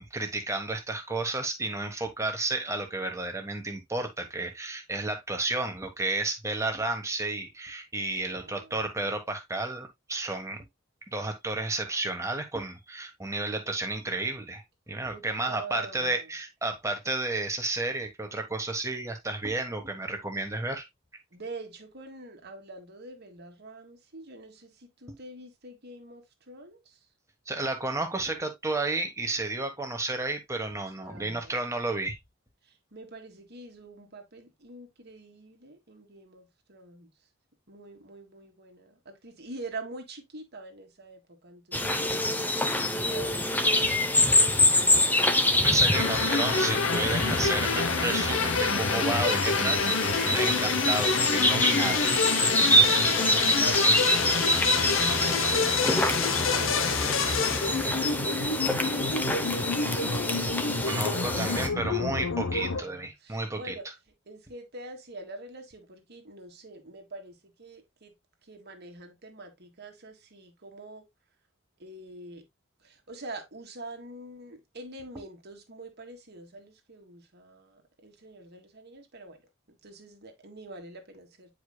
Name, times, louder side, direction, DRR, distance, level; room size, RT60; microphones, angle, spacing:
voice 1, 0.0-10.6 11.1-20.9 27.5-32.2 45.6-52.1 60.8-63.7, right 2 dB, 15° right, 1.4 m, -32 dB
voice 2, 8.2-8.9 15.1-16.3 21.3-27.1 30.9-31.9 32.6-37.1 37.7-42.4 43.0-45.1 52.6-54.4 54.8-60.0 62.7-68.1 68.4-71.1 71.8-72.4 72.8-79.4 79.7-81.5, right 2 dB, 55° right, 1.7 m, -45 dB
sound 1, 41.7-61.7, left 1 dB, 10° left, 0.8 m, -26 dB
sound 2, 45.9-62.8, left 5 dB, 80° left, 0.8 m, -28 dB
9.3 x 5.0 x 2.3 m
head